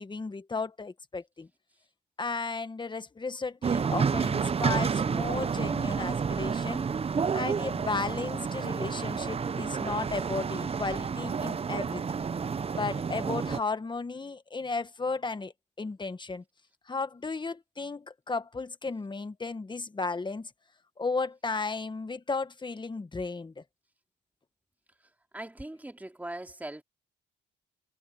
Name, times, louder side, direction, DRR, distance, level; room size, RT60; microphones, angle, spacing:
voice 1, 0.0-1.5 2.2-6.9 7.3-12.2 12.7-16.4 16.9-20.5 21.0-23.6, left 4 dB, 25° left, 1.5 m, -34 dB
sound 1, 3.6-13.6, right 6 dB, 30° right, 0.7 m, -30 dB
voice 2, 24.9-26.8, right 1 dB, 10° right, 2.7 m, -41 dB
cardioid pair, 90°, 20 cm